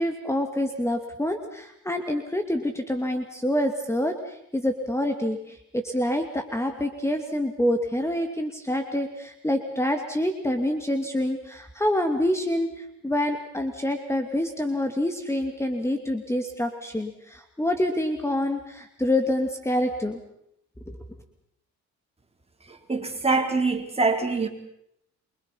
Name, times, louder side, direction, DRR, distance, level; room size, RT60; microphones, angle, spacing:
voice 1, 0.0-20.2 20.9-21.0, left 1 dB, 10° left, 5 dB, 2.5 m, -27 dB
voice 2, 22.7-24.5, right 3 dB, 20° right, 4 dB, 4.3 m, -24 dB
28.5 x 24.0 x 5.8 m, 0.74 s
cardioid pair, 90°, 30 cm